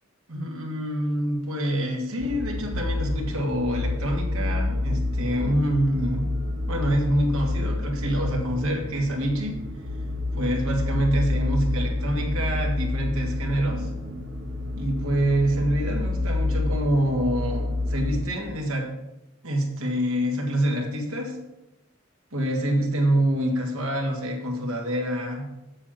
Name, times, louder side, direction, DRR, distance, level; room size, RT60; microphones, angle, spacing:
voice 1, 0.3-6.4 6.7-9.6 10.4-13.9 14.7-18.9 19.4-21.4 22.3-25.5, right 1 dB, 85° right, 1 dB, 2.0 m, -26 dB
sound 1, 2.2-18.3, left 2 dB, 60° right, 1.1 m, -28 dB
7.8 x 7.5 x 5.9 m, 0.95 s
head